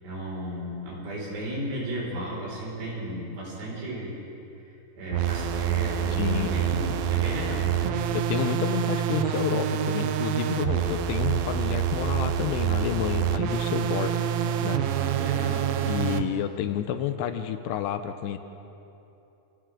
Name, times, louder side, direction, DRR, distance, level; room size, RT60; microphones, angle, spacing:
voice 1, 0.0-4.2 5.0-7.7 15.0-15.8, right 1 dB, 70° right, -4 dB, 7.7 m, -34 dB
sound 1, 5.1-16.2, right 9 dB, 90° right, 3.1 m, -26 dB
voice 2, 6.1-6.9 8.1-14.2 14.6-14.8 15.8-18.4, left 10 dB, 80° left, 9 dB, 2.8 m, -30 dB
29.0 x 28.0 x 3.8 m, 2.9 s
omnidirectional pair, 5.1 m